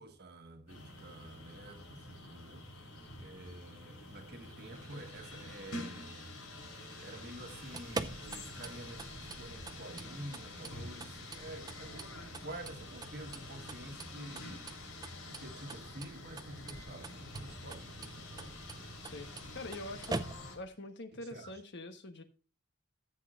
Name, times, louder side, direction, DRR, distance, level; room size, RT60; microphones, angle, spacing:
voice 1, 0.0-2.7 3.1-6.4 7.0-14.9 15.2-18.5 21.1-21.6, right 1 dB, 50° right, 1.5 m, -49 dB
sound 1, 0.7-20.6, left 2 dB, 75° left, 3.4 m, -48 dB
sound 2, 4.0-5.7 6.5-10.5 11.0-12.0, right 3 dB, 90° right, 1.5 m, -61 dB
sound 3, 7.6-20.7, right 3 dB, 20° right, 0.5 m, -45 dB
voice 2, 19.5-20.2 20.5-22.2, left 2 dB, 55° left, 1.2 m, -44 dB
14.0 x 8.2 x 2.5 m
head